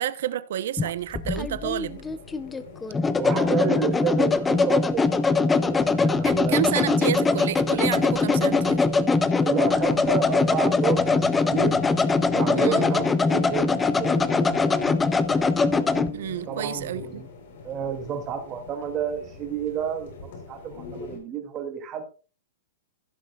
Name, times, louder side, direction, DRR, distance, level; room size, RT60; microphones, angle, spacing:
voice 1, 0.0-2.0 6.2-8.8 12.5-12.9 16.1-17.2, right 11 dB, 65° right, 0.8 m, -29 dB
sound 1, 0.8-16.1, left 4 dB, 10° left, 0.5 m, -22 dB
sound 2, 1.8-21.2, left 5 dB, 60° left, 3.8 m, -41 dB
voice 2, 3.2-6.6 9.1-11.8 12.3-14.1 16.5-17.3 17.6-22.0, right 7 dB, 20° right, 2.4 m, -30 dB
16.0 x 7.5 x 2.4 m
hypercardioid pair, 160°, 0 cm